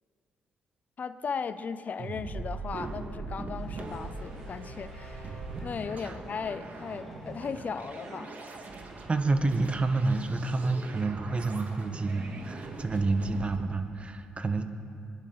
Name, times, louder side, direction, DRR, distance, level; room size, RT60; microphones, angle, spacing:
voice 1, 1.0-8.6, left 6 dB, 50° left, 13 dB, 0.6 m, -37 dB
sound 1, 2.0-13.6, right 3 dB, 50° right, 1.9 m, -41 dB
sound 2, 3.6-13.0, equal, 10° left, 3.8 m, -58 dB
sound 3, 3.7-6.9, right 1 dB, 75° right, 3.4 m, -47 dB
voice 2, 9.1-14.6, right 3 dB, 35° right, 7 dB, 1.3 m, -29 dB
22.0 x 10.5 x 3.9 m, 2.6 s
hypercardioid pair, 50°, 4 cm